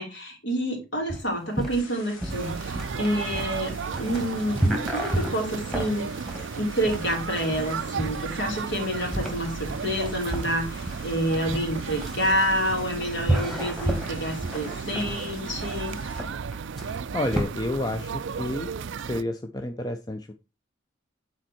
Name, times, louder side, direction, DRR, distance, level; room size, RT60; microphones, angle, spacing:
voice 1, 0.0-6.1 6.5-16.0, equal, 60° left, 1 dB, 3.0 m, -28 dB
sound 1, 1.1-17.4, right 1 dB, ahead, 1.7 m, -31 dB
sound 2, 1.7-16.2, left 3 dB, 80° left, 2.4 m, -46 dB
sound 3, 2.3-19.2, right 6 dB, 65° right, 0.4 m, -34 dB
voice 2, 17.1-18.7 19.0-20.3, left 1 dB, 20° left, 6 dB, 0.5 m, -30 dB
9.0 x 4.4 x 4.3 m, 0.27 s
head